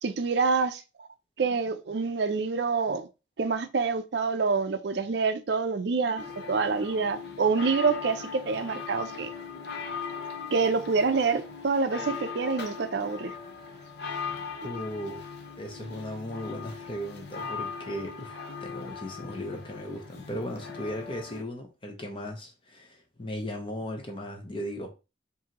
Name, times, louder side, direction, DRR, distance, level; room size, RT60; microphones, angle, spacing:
voice 1, 0.0-0.8 1.4-3.1 3.4-9.3 10.5-13.3, right 4 dB, 65° right, 0.5 m, -27 dB
sound 1, 6.2-21.4, left 5 dB, 60° left, 0.6 m, -39 dB
voice 2, 14.6-24.9, equal, 30° left, 0.8 m, -37 dB
4.7 x 2.7 x 2.9 m
head